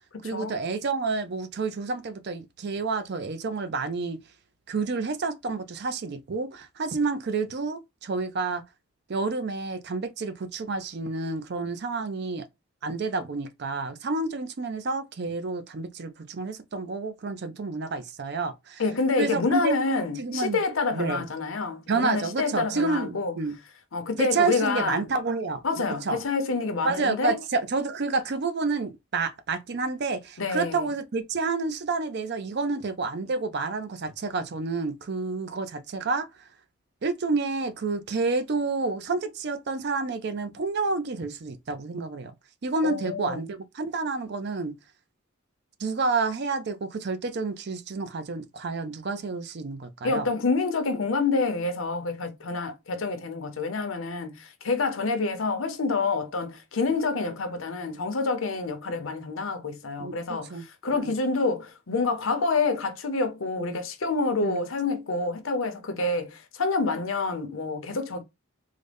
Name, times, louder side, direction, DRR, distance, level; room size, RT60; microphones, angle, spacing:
voice 1, 0.2-4.2 4.7-8.6 9.1-12.5 12.8-18.8 19.2-19.7 20.2-20.6 20.9-21.3 21.9-23.6 24.2-26.2 26.8-36.3 37.0-42.3 42.6-44.7 45.8-50.3 60.0-60.6 61.0-61.1 63.6-63.8 64.4-64.7, right 3 dB, 50° right, 0.5 m, -29 dB
voice 2, 18.8-23.3 23.9-25.1 25.6-27.4 30.4-30.9 42.8-43.4 50.0-68.2, left 3 dB, 70° left, 0.7 m, -27 dB
3.9 x 2.1 x 3.3 m
head